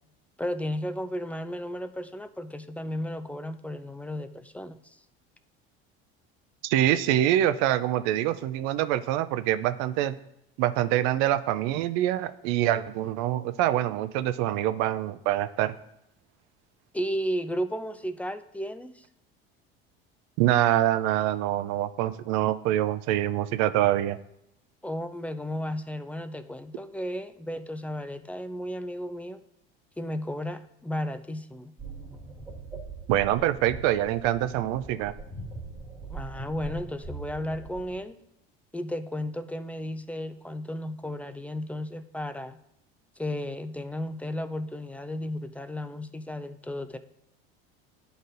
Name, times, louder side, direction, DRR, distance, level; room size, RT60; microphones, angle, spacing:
voice 1, 0.4-5.0 16.9-19.1 24.8-29.4 30.0-31.7 36.1-38.2 38.7-42.6 43.2-47.0, equal, 5° left, 10 dB, 0.3 m, -34 dB
voice 2, 6.6-10.2 10.6-15.8 20.4-24.2 33.1-35.1, right 13 dB, 65° right, 12 dB, 0.5 m, -25 dB
sound 1, 31.8-38.0, right 3 dB, 10° right, 1.4 m, -41 dB
11.0 x 4.0 x 2.6 m, 0.80 s
hypercardioid pair, 80°, 30 cm